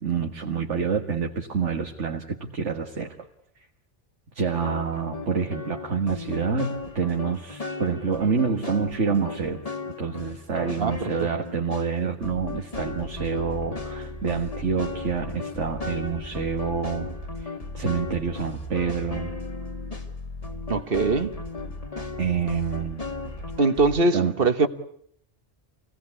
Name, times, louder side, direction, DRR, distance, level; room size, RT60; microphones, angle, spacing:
voice 1, 0.0-3.2 4.3-9.6 10.0-17.1 17.4-19.3 22.2-23.0 24.1-24.3, right 6 dB, 90° right, 2.0 m, -27 dB
sound 1, 4.6-11.9 12.2-24.0, left 3 dB, 30° left, 2.0 m, -35 dB
voice 2, 20.7-21.4 23.6-24.7, right 3 dB, 55° right, 1.5 m, -22 dB
27.5 x 18.0 x 9.7 m
omnidirectional pair, 1.2 m